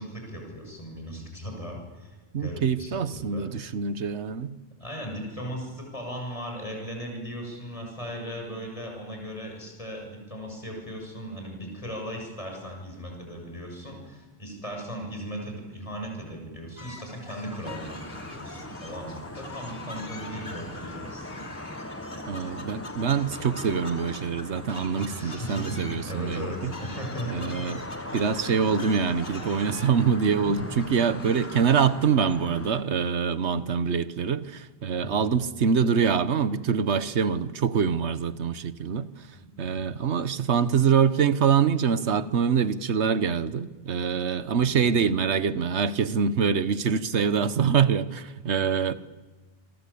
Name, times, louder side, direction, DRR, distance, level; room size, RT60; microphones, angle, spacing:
voice 1, 0.0-3.5 4.8-21.6 25.1-27.5 35.0-35.3 39.3-39.9, equal, 30° left, 1 dB, 7.2 m, -37 dB
voice 2, 2.3-4.5 22.3-26.7 27.3-27.8 28.1-39.1 39.6-49.0, right 6 dB, 75° right, 14 dB, 1.4 m, -25 dB
sound 1, 16.8-32.1, left 2 dB, 60° left, 3.3 m, -44 dB
sound 2, 17.6-32.8, left 1 dB, 15° left, 1.0 m, -40 dB
27.5 x 23.0 x 8.6 m, 1.2 s
omnidirectional pair, 1.2 m